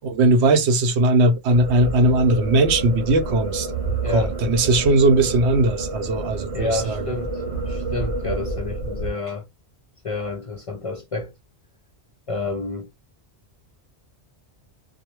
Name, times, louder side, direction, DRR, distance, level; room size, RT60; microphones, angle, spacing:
voice 1, 0.1-3.7 4.1-7.0, right 2 dB, 80° right, 0.9 m, -19 dB
sound 1, 1.5-9.1, right 3 dB, 35° right, 0.8 m, -29 dB
voice 2, 4.0-4.3 6.5-7.4 7.7-9.4 10.0-11.3 12.3-12.9, left 3 dB, 45° left, 0.4 m, -29 dB
2.6 x 2.0 x 2.9 m
omnidirectional pair, 1.1 m